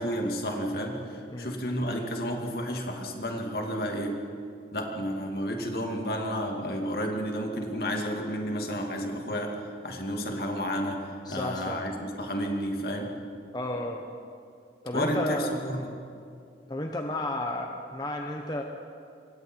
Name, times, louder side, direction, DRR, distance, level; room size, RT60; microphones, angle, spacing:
voice 1, 0.0-4.2 4.7-9.5 9.8-13.1 14.9-15.8, equal, 60° left, 1 dB, 2.7 m, -31 dB
voice 2, 11.2-11.8 13.5-14.0 14.8-15.9 16.7-18.6, left 1 dB, 25° left, 2 dB, 1.1 m, -32 dB
26.5 x 23.0 x 4.7 m, 2.4 s
head